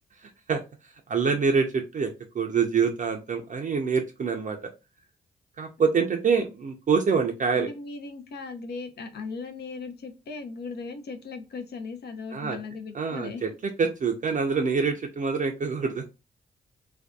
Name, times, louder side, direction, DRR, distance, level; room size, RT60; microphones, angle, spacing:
voice 1, 0.2-2.1 2.3-4.6 5.6-7.7 12.3-12.6 12.9-13.5 13.8-16.1, right 5 dB, 40° right, 0.5 m, -26 dB
voice 2, 7.5-13.4, left 4 dB, 60° left, 0.6 m, -38 dB
2.6 x 2.2 x 2.2 m
supercardioid pair, 45°, 19 cm